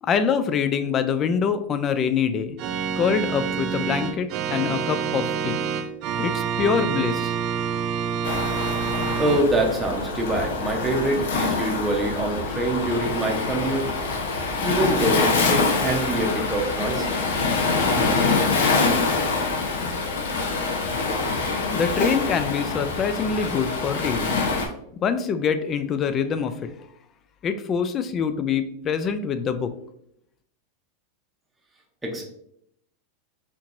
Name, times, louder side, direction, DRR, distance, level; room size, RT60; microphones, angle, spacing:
voice 1, 0.0-2.6 3.0-5.6 6.2-7.4 21.7-24.4 24.9-26.7 27.4-29.7, left 6 dB, 30° left, 11 dB, 0.3 m, -25 dB
Organ, 2.6-9.4, right 7 dB, 45° right, 0.4 m, -27 dB
Waves surf, 8.2-24.7, left 4 dB, 85° left, 0.8 m, -25 dB
voice 2, 9.2-13.8 14.6-17.2 32.0-32.2, right 1 dB, 10° right, -1 dB, 0.7 m, -25 dB
4.4 x 2.9 x 2.5 m, 0.73 s
supercardioid pair, 135°, 0 cm